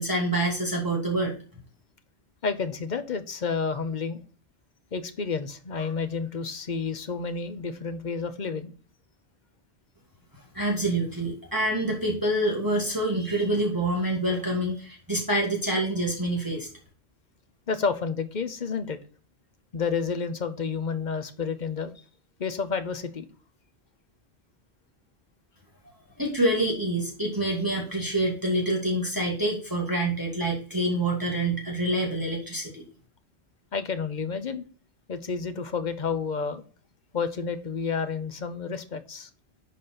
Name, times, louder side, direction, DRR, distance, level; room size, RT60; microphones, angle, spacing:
voice 1, 0.0-1.4 10.5-16.7 26.2-32.8, right 1 dB, 20° right, -2 dB, 1.8 m, -26 dB
voice 2, 2.4-4.2 4.9-8.7 17.7-19.0 19.7-21.9 22.4-23.3 33.7-34.6 35.1-36.6 37.1-39.3, left 5 dB, 45° left, 11 dB, 0.9 m, -30 dB
10.0 x 4.2 x 4.1 m, 0.39 s
omnidirectional pair, 1.1 m